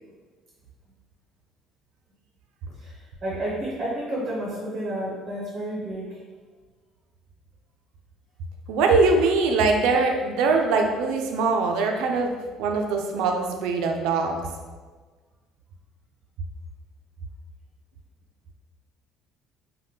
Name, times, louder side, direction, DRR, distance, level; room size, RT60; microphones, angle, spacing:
voice 1, 3.2-6.2, right 1 dB, 25° right, -5 dB, 0.6 m, -30 dB
voice 2, 8.7-14.4, right 3 dB, 75° right, 3 dB, 0.3 m, -22 dB
3.4 x 2.1 x 2.7 m, 1.4 s
cardioid pair, 165°, 0 cm